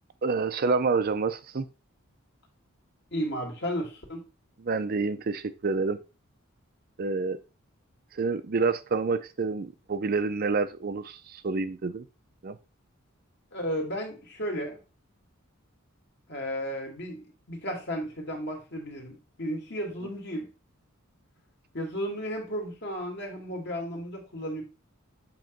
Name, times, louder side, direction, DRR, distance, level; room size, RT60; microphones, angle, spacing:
voice 1, 0.2-1.7 4.6-6.0 7.0-7.4 8.1-12.0 12.4-12.6, right 4 dB, 45° right, 0.5 m, -28 dB
voice 2, 3.1-4.2 13.5-14.8 16.3-20.5 21.7-24.6, equal, 55° left, 2.3 m, -34 dB
7.7 x 3.0 x 5.2 m
head